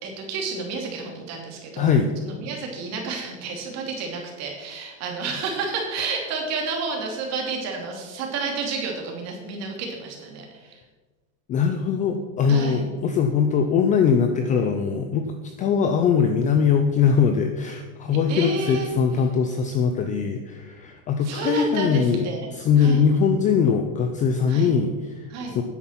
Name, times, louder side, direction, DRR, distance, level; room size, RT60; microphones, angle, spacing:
voice 1, 0.0-1.9 2.2-10.8 12.5-12.9 18.3-18.9 21.2-22.5 22.8-23.0 24.5-24.7 25.3-25.6, right 4 dB, 40° right, 1 dB, 2.8 m, -30 dB
voice 2, 1.8-2.1 6.0-6.1 11.5-22.2 22.5-25.6, left 6 dB, 20° left, 6 dB, 0.4 m, -21 dB
9.9 x 8.1 x 5.8 m, 1.3 s
supercardioid pair, 155°, 42 cm